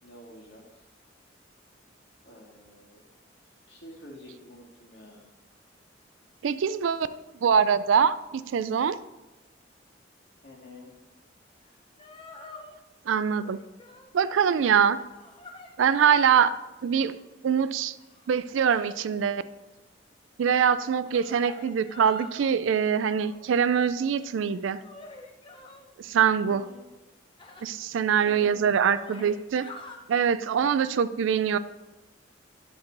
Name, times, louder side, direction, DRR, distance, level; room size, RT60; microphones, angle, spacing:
voice 1, 0.0-0.8 2.2-3.1 3.7-5.3 10.4-10.9 26.5-26.9 28.2-28.5, left 1 dB, 60° left, -2 dB, 1.9 m, -48 dB
voice 2, 6.4-7.1 7.4-9.0 13.1-13.6 14.1-15.0 15.8-16.6 16.8-17.2 17.4-18.0 18.3-19.4 20.4-24.8 26.0-26.7 27.6-29.7 30.1-31.6, right 7 dB, 80° right, 14 dB, 0.4 m, -23 dB
sound 1, 11.6-11.7 12.0-12.7 13.4-14.1 14.6-16.3 16.8-17.3 18.0-19.3 20.8-22.5 23.0-23.5 24.2-25.9 27.4-27.6 28.3-28.4 28.7-30.0 30.6-30.8, left 2 dB, 25° left, 0.6 m, -47 dB
10.5 x 7.0 x 2.6 m, 1.1 s
head